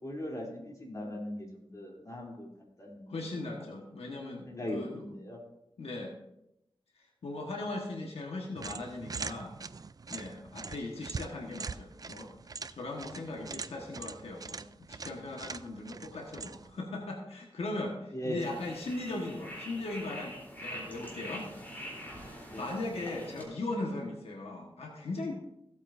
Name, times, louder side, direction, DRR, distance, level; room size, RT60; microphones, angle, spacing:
voice 1, 0.0-2.5 2.8-3.0 4.5-5.4 13.1-13.3 18.1-18.4 22.5-22.7, left 1 dB, 35° left, -2 dB, 3.2 m, -39 dB
voice 2, 3.1-5.0 5.8-6.1 7.0-9.5 10.1-12.3 12.7-14.6 14.9-21.5 21.8-22.2 22.6-25.3, left 2 dB, 85° left, 1 dB, 1.4 m, -38 dB
sound 1, 8.6-16.8, right 4 dB, 40° right, 0.3 m, -43 dB
sound 2, 18.4-23.4, equal, 20° left, 3.5 m, -44 dB
16.0 x 8.5 x 2.6 m, 0.85 s
wide cardioid pair, 80°, 10 cm